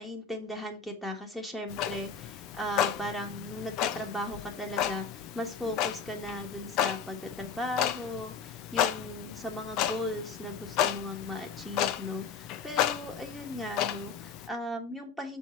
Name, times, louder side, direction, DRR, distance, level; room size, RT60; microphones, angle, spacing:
voice 1, 0.0-15.4, left 1 dB, 5° left, 3 dB, 1.5 m, -37 dB
Clock, 1.7-14.5, left 11 dB, 40° left, 0.6 m, -33 dB
6.9 x 4.5 x 4.5 m, 0.29 s
hypercardioid pair, 130°, 0 cm